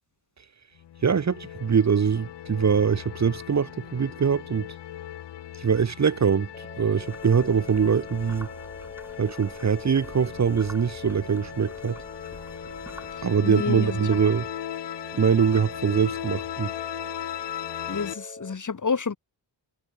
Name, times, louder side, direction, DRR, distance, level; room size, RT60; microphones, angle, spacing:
sound 1, 0.8-18.1, left 11 dB, 65° left, 0.8 m, -38 dB
voice 1, 1.0-4.7 5.6-8.5 9.2-12.0 13.2-14.5 15.1-16.7, right 6 dB, 40° right, 0.9 m, -23 dB
sound 2, 6.5-18.5, left 2 dB, 25° left, 7.0 m, -43 dB
sound 3, 7.0-13.4, right 1 dB, 5° right, 2.9 m, -48 dB
voice 2, 13.4-14.0 17.9-19.2, left 5 dB, 40° left, 2.0 m, -28 dB
cardioid pair, 60°, 45 cm